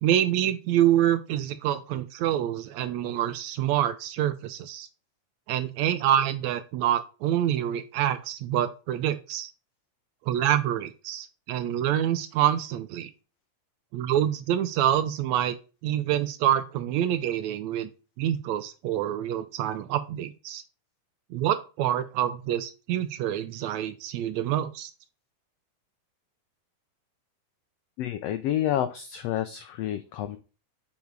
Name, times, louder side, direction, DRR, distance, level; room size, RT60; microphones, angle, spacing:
voice 1, 0.0-4.9 5.5-9.5 10.3-13.1 13.9-15.5 15.8-17.9 18.2-20.6 21.3-24.9, right 11 dB, 75° right, 12 dB, 1.8 m, -26 dB
voice 2, 28.0-30.4, left 11 dB, 90° left, 9 dB, 1.4 m, -29 dB
7.3 x 5.3 x 4.7 m, 0.33 s
omnidirectional pair, 3.5 m